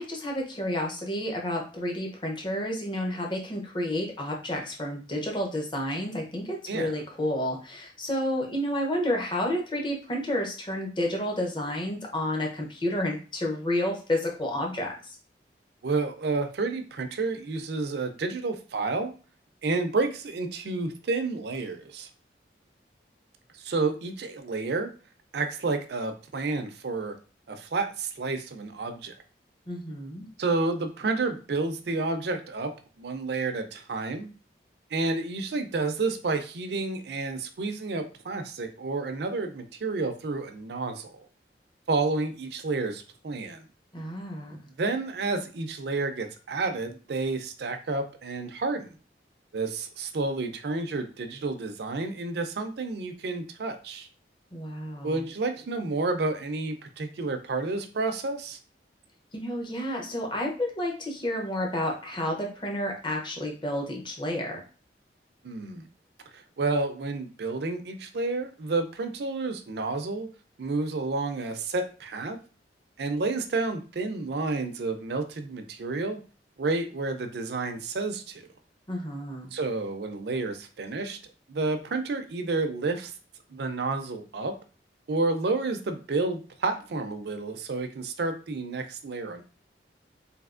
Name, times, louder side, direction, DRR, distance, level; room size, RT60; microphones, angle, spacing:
voice 1, 0.0-15.2 29.7-30.3 43.9-44.6 54.5-55.2 59.3-64.6 78.9-79.5, left 1 dB, 25° left, 1 dB, 0.6 m, -30 dB
voice 2, 15.8-19.1 19.6-22.1 23.6-24.9 25.3-27.1 27.5-29.1 30.4-32.7 33.0-34.3 34.9-41.1 41.9-43.6 44.8-48.9 49.5-54.1 55.0-58.6 65.4-65.9 66.3-70.3 70.6-72.4 73.0-76.2 76.6-78.4 79.5-81.2 81.5-83.1 83.5-84.6 85.1-89.4, right 3 dB, 65° right, 7 dB, 0.4 m, -30 dB
3.3 x 2.7 x 2.4 m, 0.36 s
head